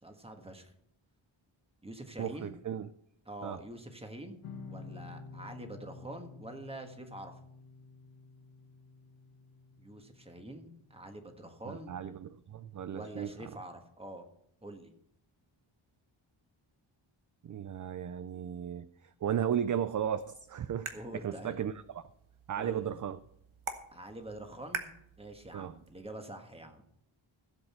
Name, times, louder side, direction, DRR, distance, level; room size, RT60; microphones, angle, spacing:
voice 1, 0.0-0.7 1.8-2.6 3.3-7.3 9.8-11.9 12.9-14.2 14.6-14.9 20.9-21.7 22.5-22.9 23.9-24.9 25.2-26.9, right 1 dB, 10° right, 1.5 m, -46 dB
voice 2, 2.2-2.9 3.4-3.6 11.6-13.5 17.4-22.0 22.5-23.2 25.5-25.8, right 9 dB, 40° right, 0.4 m, -35 dB
sound 1, 4.4-11.6, left 4 dB, 90° left, 1.6 m, -50 dB
sound 2, 19.9-26.0, right 6 dB, 80° right, 1.6 m, -46 dB
16.0 x 8.0 x 4.4 m
wide cardioid pair, 175°, 47 cm